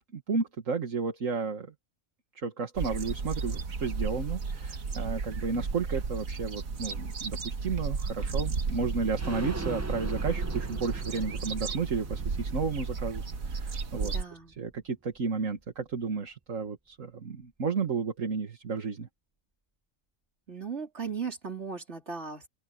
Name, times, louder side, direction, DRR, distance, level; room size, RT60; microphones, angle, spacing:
voice 1, 0.1-1.7 2.4-14.1 14.6-19.1, right 4 dB, 70° right, 2.1 m, -32 dB
sound 1, 2.7-14.2, right 4 dB, 85° right, 2.0 m, -33 dB
sound 2, 9.2-14.8 15.1-15.2 15.5-15.6, right 2 dB, 15° right, 0.6 m, -41 dB
voice 2, 14.0-14.5 20.5-22.5, right 5 dB, 55° right, 3.8 m, -37 dB
open air
omnidirectional pair, 1.4 m